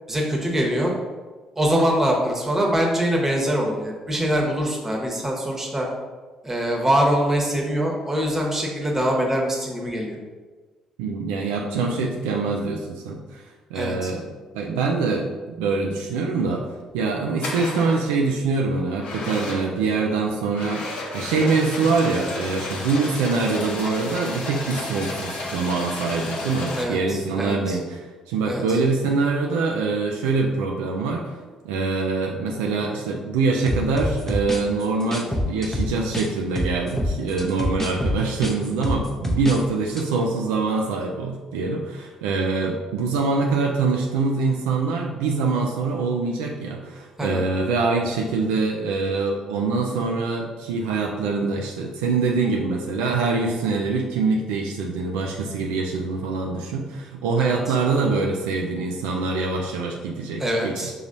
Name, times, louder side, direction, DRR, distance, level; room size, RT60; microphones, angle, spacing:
voice 1, 0.1-0.9 1.6-5.9 6.4-10.2 13.7-14.1 26.7-27.8 28.4-28.8 47.2-47.4 57.4-57.7 60.4-60.9, equal, 15° right, -1 dB, 1.1 m, -23 dB
voice 2, 11.0-13.4 13.7-16.6 16.9-31.3 31.6-60.9, right 4 dB, 75° right, 0 dB, 0.3 m, -24 dB
sound 1, 16.8-17.0 17.4-18.1 19.0-19.8 20.5-26.8, left 2 dB, 60° left, 0.7 m, -32 dB
sound 2, 33.7-36.3 36.6-39.6 39.9-40.1, left 1 dB, 15° left, 0.7 m, -26 dB
5.5 x 2.9 x 2.6 m, 1.4 s
hypercardioid pair, 45°, 2 cm